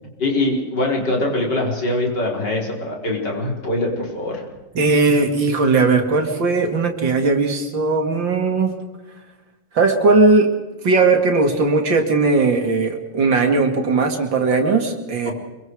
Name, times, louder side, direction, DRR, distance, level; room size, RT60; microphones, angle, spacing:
voice 1, 0.0-4.5 15.3-15.4, left 2 dB, 70° left, -1 dB, 5.2 m, -23 dB
voice 2, 4.7-8.7 9.7-10.5 10.8-15.3, right 3 dB, 90° right, 3 dB, 3.0 m, -18 dB
25.5 x 24.0 x 4.8 m, 1.1 s
omnidirectional pair, 2.0 m